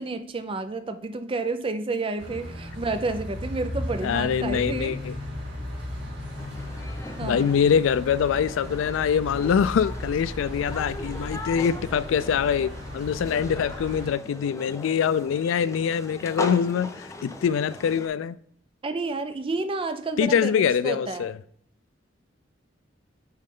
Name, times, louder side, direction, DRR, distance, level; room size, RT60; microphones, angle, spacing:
voice 1, 0.0-5.0 7.2-7.5 18.8-21.3, right 3 dB, 30° right, 0.5 m, -30 dB
sound 1, 2.2-14.1, left 1 dB, 65° right, 2.1 m, -36 dB
voice 2, 4.0-5.1 7.2-18.4 20.2-21.3, left 7 dB, 85° left, 0.3 m, -24 dB
sound 2, 6.4-18.1, left 2 dB, 15° left, 0.6 m, -39 dB
9.1 x 3.2 x 3.7 m
head